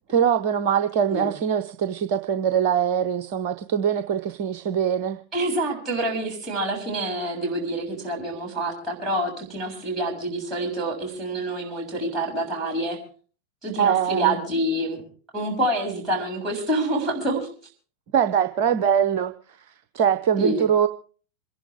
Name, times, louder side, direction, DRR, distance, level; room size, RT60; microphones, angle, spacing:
voice 1, 0.1-5.2 13.8-14.4 18.1-20.9, right 8 dB, 45° right, 10 dB, 0.8 m, -23 dB
voice 2, 5.3-13.0 13.6-15.0 15.3-17.5 20.4-20.6, right 1 dB, 15° right, 0 dB, 7.0 m, -27 dB
27.5 x 11.0 x 3.5 m, 0.41 s
figure-of-eight pair, 90°, 0 cm